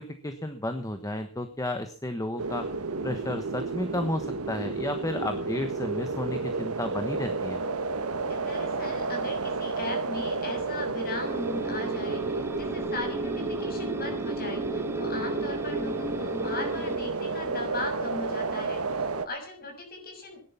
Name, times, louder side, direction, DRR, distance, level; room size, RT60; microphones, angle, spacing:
voice 1, 0.0-2.7 3.0-7.6, left 1 dB, 15° left, 8 dB, 1.2 m, -32 dB
sound 1, 2.4-19.3, right 3 dB, 85° right, 1.3 m, -31 dB
voice 2, 8.3-20.4, left 2 dB, 45° left, 4 dB, 6.3 m, -38 dB
sound 2, 11.2-17.0, right 1 dB, 10° right, 0.8 m, -35 dB
17.0 x 10.5 x 5.8 m, 0.43 s
head